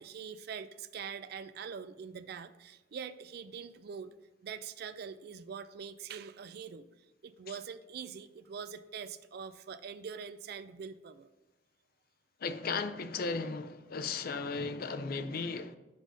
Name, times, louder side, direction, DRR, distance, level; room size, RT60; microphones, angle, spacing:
voice 1, 0.0-4.1 4.4-6.9 7.2-11.3, right 6 dB, 55° right, 0.4 m, -44 dB
voice 2, 12.4-15.8, left 4 dB, 50° left, 0.5 m, -35 dB
5.3 x 5.1 x 5.1 m
head